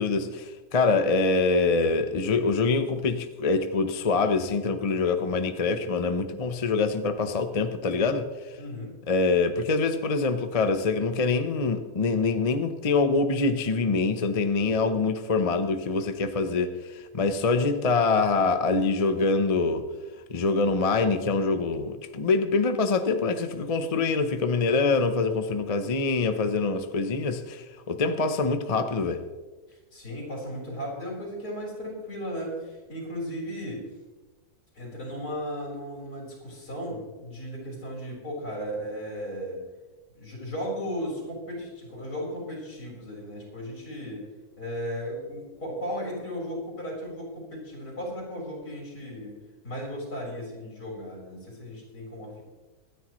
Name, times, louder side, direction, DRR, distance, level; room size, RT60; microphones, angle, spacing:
voice 1, 0.0-8.3 9.1-19.8 20.3-29.2, left 4 dB, 35° left, 0.6 m, -25 dB
voice 2, 8.6-8.9 29.7-33.8 34.7-39.6 40.1-44.2 44.6-49.4 49.6-52.4, equal, 75° left, 4.7 m, -35 dB
25.0 x 10.0 x 3.1 m
omnidirectional pair, 1.7 m